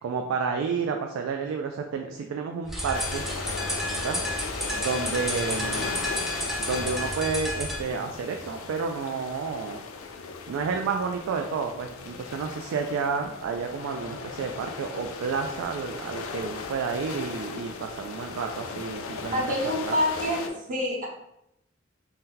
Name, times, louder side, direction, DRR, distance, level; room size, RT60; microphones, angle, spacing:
voice 1, 0.0-3.2 4.0-4.2 4.8-6.1 6.6-9.8 10.5-19.4 19.8-19.9, right 5 dB, 85° right, 3 dB, 0.3 m, -30 dB
sound 1, 2.7-7.8, equal, ahead, 0.4 m, -31 dB
sound 2, 2.9-20.5, left 5 dB, 85° left, 0.4 m, -37 dB
voice 2, 19.3-21.1, equal, 40° right, -2 dB, 0.6 m, -27 dB
2.8 x 2.1 x 3.7 m, 0.81 s
head